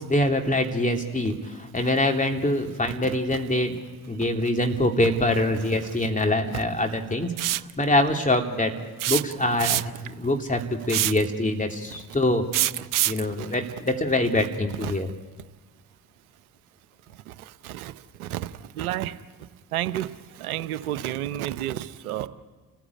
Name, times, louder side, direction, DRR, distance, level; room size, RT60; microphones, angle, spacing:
voice 1, 0.0-3.8 4.1-7.3 7.8-8.7 9.1-12.4 13.0-15.1, left 1 dB, 20° left, 3 dB, 3.0 m, -24 dB
voice 2, 3.1-3.4 5.8-6.0 6.5-6.6 11.9-12.0 12.8-12.9 13.2-13.6 14.3-14.5 14.8-15.0 17.1-19.2 19.7-22.3, right 13 dB, 80° right, 14 dB, 1.0 m, -32 dB
sound 1, 7.4-7.7 9.0-10.1 10.9-11.3 12.5-13.2, right 14 dB, 50° right, 0.7 m, -24 dB
29.5 x 15.0 x 8.6 m, 1.3 s
figure-of-eight pair, 45°, 43 cm